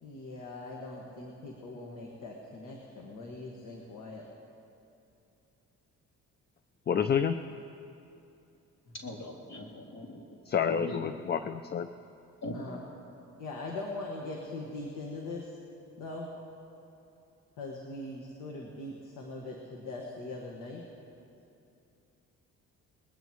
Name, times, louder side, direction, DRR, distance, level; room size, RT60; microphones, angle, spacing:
voice 1, 0.0-4.2 12.5-12.8 13.4-15.5 16.0-16.4 17.6-20.9, left 2 dB, 85° left, -1 dB, 1.8 m, -41 dB
voice 2, 6.9-7.4 10.5-11.9, left 7 dB, 35° left, 10 dB, 0.5 m, -28 dB
voice 3, 9.0-10.4 10.6-11.1 12.4-12.6, left 1 dB, 60° left, -2 dB, 3.3 m, -41 dB
22.0 x 20.0 x 3.1 m, 2.8 s
cardioid pair, 90°, 30 cm